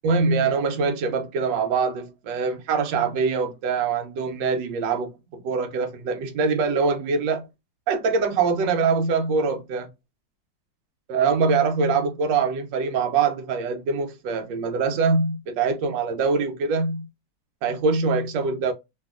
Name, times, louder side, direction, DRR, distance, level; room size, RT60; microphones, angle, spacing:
voice 1, 0.0-7.5 7.9-9.9 11.1-17.1 17.6-18.7, right 4 dB, 90° right, 1.3 m, -23 dB
2.9 x 2.7 x 2.3 m
omnidirectional pair, 1.9 m